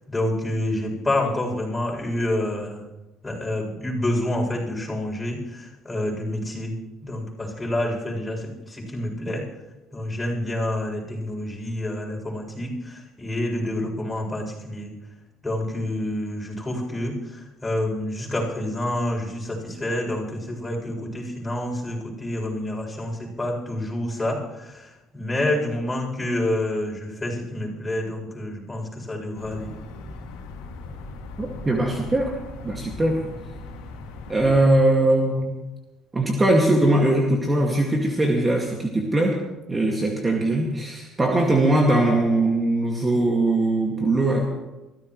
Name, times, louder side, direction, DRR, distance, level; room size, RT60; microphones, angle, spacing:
voice 1, 0.1-2.8 3.2-9.4 9.9-14.9 15.4-29.7, left 1 dB, 15° left, -1 dB, 7.5 m, -28 dB
sound 1, 29.3-34.8, left 2 dB, 90° left, 2.5 m, -39 dB
voice 2, 31.4-32.4 32.6-33.2 34.3-35.5 36.1-39.4 39.7-44.4, right 1 dB, 20° right, 0 dB, 2.2 m, -21 dB
23.5 x 15.5 x 3.2 m, 1.0 s
supercardioid pair, 80°, 0 cm